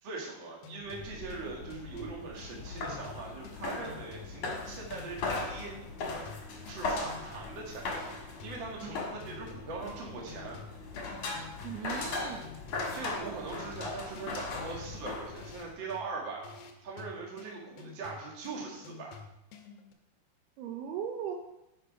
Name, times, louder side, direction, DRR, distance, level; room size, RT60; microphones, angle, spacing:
voice 1, 0.0-5.7 6.7-8.1 8.4-10.6 12.9-19.1, right 4 dB, 45° right, -2 dB, 1.7 m, -41 dB
sound 1, 0.6-19.9, left 6 dB, 75° left, 2.3 m, -50 dB
sound 2, 0.8-15.7, left 3 dB, 55° left, 2.0 m, -39 dB
voice 2, 11.6-12.5 20.6-21.4, right 8 dB, 75° right, 3 dB, 2.5 m, -38 dB
10.0 x 5.5 x 4.9 m, 0.88 s
omnidirectional pair, 4.9 m